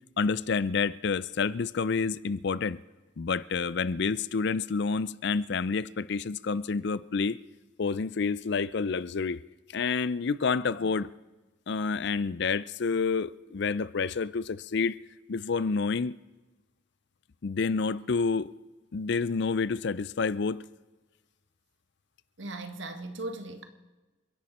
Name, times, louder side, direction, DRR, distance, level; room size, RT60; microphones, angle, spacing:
voice 1, 0.2-2.8 3.2-7.4 7.8-9.4 9.7-11.1 11.7-15.0 15.3-16.1 17.4-18.5 18.9-20.7, left 5 dB, 55° left, 0.5 m, -29 dB
voice 2, 22.4-23.6, right 2 dB, 65° right, 1.6 m, -38 dB
29.0 x 11.0 x 4.3 m
head